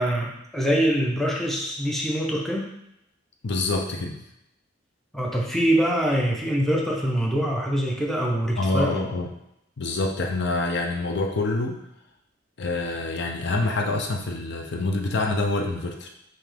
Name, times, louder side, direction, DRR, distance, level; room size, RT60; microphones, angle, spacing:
voice 1, 0.0-2.7 5.1-9.0, equal, ahead, -2 dB, 0.6 m, -24 dB
voice 2, 3.4-4.2 8.6-9.3 9.8-11.8 12.6-16.1, left 2 dB, 60° left, 2 dB, 0.6 m, -26 dB
5.8 x 2.6 x 3.4 m, 0.82 s
head